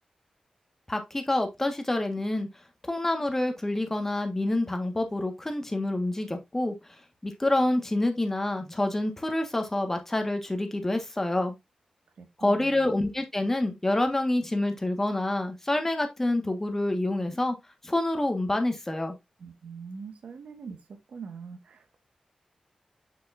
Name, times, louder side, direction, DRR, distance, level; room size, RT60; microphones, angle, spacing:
voice 1, 0.9-2.5 2.8-6.7 7.2-11.5 12.4-17.5 17.8-19.1, left 1 dB, 15° left, 1.5 m, -27 dB
voice 2, 12.2-12.9 19.4-20.8 21.1-22.0, right 5 dB, 80° right, 1.5 m, -43 dB
7.0 x 6.3 x 2.6 m
wide cardioid pair, 120°, 2 cm